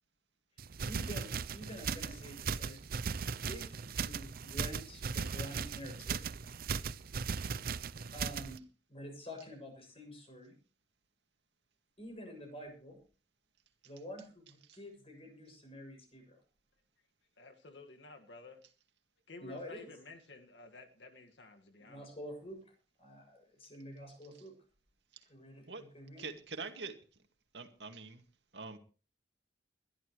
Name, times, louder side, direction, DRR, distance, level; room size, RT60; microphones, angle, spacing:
sound 1, 0.6-8.6, right 5 dB, 55° right, 0.6 m, -38 dB
voice 1, 0.8-2.8 3.5-6.5 7.5-7.8 8.1-8.6 8.9-10.5 12.0-13.0 13.8-16.4 19.4-19.9 21.8-22.6 23.0-24.5 25.3-26.3, equal, 35° left, 3 dB, 7.2 m, -48 dB
voice 2, 17.4-18.6 19.3-22.1, left 3 dB, 90° left, 5 dB, 2.0 m, -53 dB
voice 3, 26.2-27.0 27.5-28.2 28.5-28.8, right 4 dB, 80° right, 5 dB, 2.1 m, -44 dB
22.0 x 12.0 x 3.2 m, 0.37 s
head